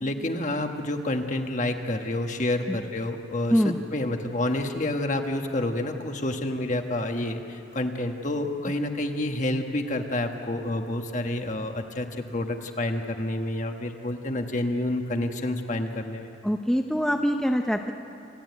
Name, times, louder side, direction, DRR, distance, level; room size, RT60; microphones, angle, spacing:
voice 1, 0.0-3.6 3.9-16.3, left 1 dB, 40° left, 5 dB, 1.4 m, -29 dB
voice 2, 16.4-17.9, equal, 5° left, 3 dB, 0.7 m, -24 dB
28.0 x 13.5 x 9.5 m, 2.7 s
head